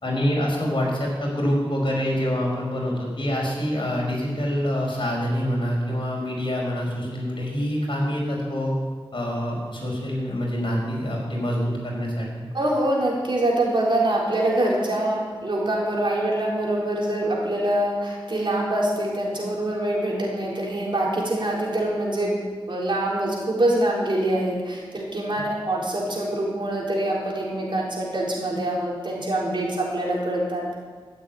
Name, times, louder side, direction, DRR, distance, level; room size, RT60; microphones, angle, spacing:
voice 1, 0.0-8.7 9.1-12.3, equal, 60° left, -2 dB, 4.7 m, -26 dB
voice 2, 12.5-22.4 22.7-30.7, right 1 dB, 55° right, -4 dB, 4.1 m, -24 dB
13.5 x 7.5 x 9.1 m, 1.5 s
wide cardioid pair, 90°, 10 cm